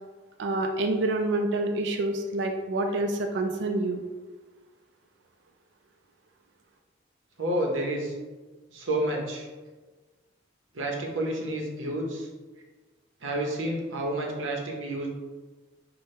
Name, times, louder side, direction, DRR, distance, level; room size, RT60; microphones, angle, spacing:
voice 1, 0.4-4.0, right 2 dB, 65° right, 4 dB, 0.3 m, -27 dB
voice 2, 7.4-8.1 8.7-9.5 10.7-12.3 13.2-15.1, right 1 dB, 90° right, 0 dB, 0.8 m, -30 dB
5.8 x 2.2 x 3.2 m, 1.3 s
head